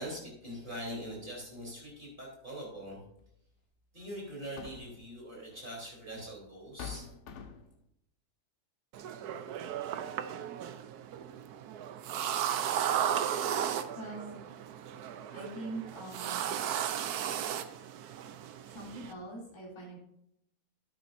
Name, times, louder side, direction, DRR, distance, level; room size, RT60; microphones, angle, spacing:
voice 1, 0.0-3.0 3.9-7.1, equal, 30° right, -3 dB, 4.0 m, -42 dB
sound 1, 3.2-3.3 4.3-5.1 6.1-6.2 6.8-7.8, left 6 dB, 55° left, 1.0 m, -45 dB
sound 2, 8.9-19.1, right 9 dB, 75° right, 1.2 m, -35 dB
voice 2, 13.9-14.4 15.3-16.5 18.7-20.0, right 2 dB, 15° left, -5 dB, 3.0 m, -43 dB
12.5 x 9.1 x 2.6 m, 0.77 s
omnidirectional pair, 1.7 m